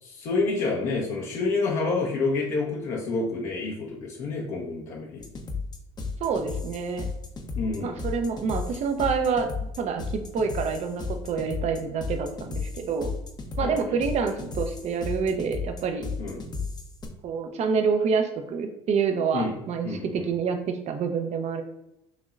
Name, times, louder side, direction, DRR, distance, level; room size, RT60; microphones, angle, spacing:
voice 1, 0.0-5.2 7.5-8.0 13.6-14.0 16.2-16.4 19.3-19.5 19.8-20.3, left 3 dB, 60° left, -2 dB, 1.0 m, -28 dB
sound 1, 5.2-17.1, left 4 dB, 30° left, 0.8 m, -34 dB
voice 2, 6.2-7.1 7.8-9.5 9.8-13.1 13.6-16.1 17.2-21.6, right 5 dB, 50° right, 6 dB, 0.8 m, -27 dB
6.1 x 3.0 x 2.5 m, 0.83 s
hypercardioid pair, 80°, 15 cm